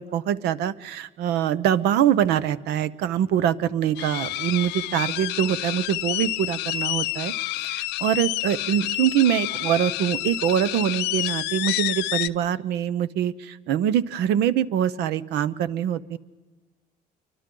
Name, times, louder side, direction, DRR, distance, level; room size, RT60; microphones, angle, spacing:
voice 1, 0.0-7.3 7.6-16.2, right 10 dB, 80° right, 15 dB, 0.8 m, -24 dB
sound 1, 4.0-12.3, left 17 dB, 90° left, 0.6 m, -29 dB
29.0 x 24.5 x 3.8 m, 1.3 s
cardioid pair, 110°, 17 cm